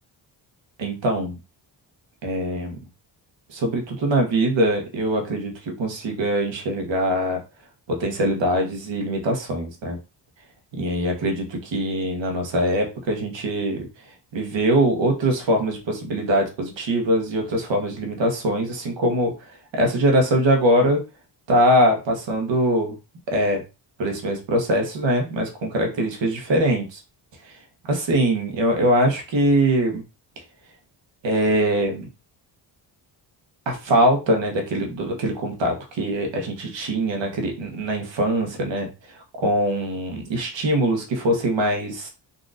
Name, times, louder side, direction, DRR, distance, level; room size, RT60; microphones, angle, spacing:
voice 1, 0.8-1.4 2.2-2.8 3.5-7.4 7.9-10.0 10.7-13.9 14.3-19.3 19.7-21.0 21.5-23.0 23.3-23.6 24.0-27.0 27.4-27.5 27.9-30.0 31.2-32.1 33.6-38.9 39.4-42.1, right 1 dB, 65° right, 2 dB, 1.3 m, -22 dB
4.0 x 2.8 x 2.5 m, 0.29 s
cardioid pair, 70°, 47 cm